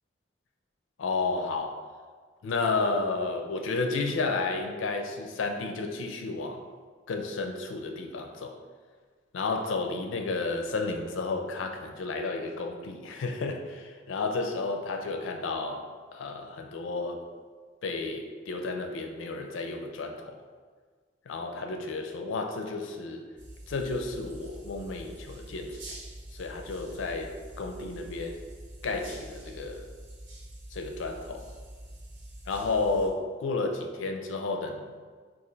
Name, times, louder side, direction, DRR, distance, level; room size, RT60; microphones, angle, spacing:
voice 1, 1.0-1.8 2.4-6.7 7.1-8.6 9.3-17.3 17.8-20.4 21.3-23.3 23.7-25.8 26.3-28.4 28.8-29.9 30.7-31.5 32.5-34.9, left 3 dB, 90° left, 4 dB, 0.4 m, -32 dB
sound 1, 23.4-33.1, right 1 dB, 75° right, 0.7 m, -45 dB
3.1 x 2.4 x 3.9 m, 1.5 s
head